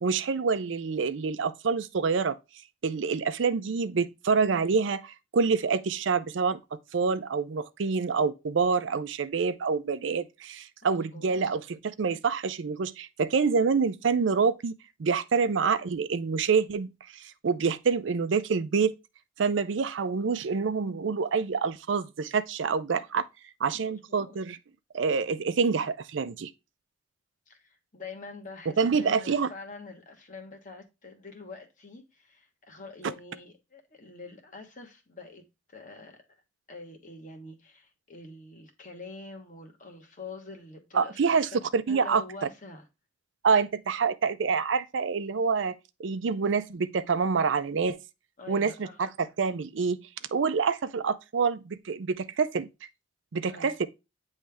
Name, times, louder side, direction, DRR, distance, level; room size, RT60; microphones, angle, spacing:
voice 1, 0.0-2.4 2.8-14.7 15.0-18.9 19.4-23.3 23.6-24.6 24.9-26.5 28.8-29.5 40.9-42.2 43.4-48.0 48.5-52.7 53.3-53.9, right 5 dB, 75° right, 0.5 m, -27 dB
voice 2, 10.8-11.5 23.7-24.4 27.5-35.4 35.7-36.2 36.7-41.6 41.9-42.9 43.6-43.7 48.4-49.0 53.5-53.7, left 3 dB, 40° left, 1.2 m, -46 dB
9.0 x 3.2 x 3.4 m
head